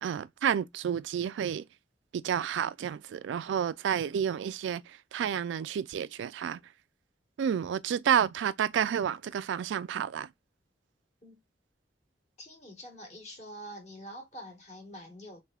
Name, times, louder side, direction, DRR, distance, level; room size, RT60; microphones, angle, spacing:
voice 1, 0.0-1.6 2.1-6.6 7.4-10.3, right 8 dB, 85° right, 0.3 m, -30 dB
voice 2, 12.4-15.4, equal, 40° left, 1.5 m, -46 dB
3.5 x 3.3 x 2.3 m
head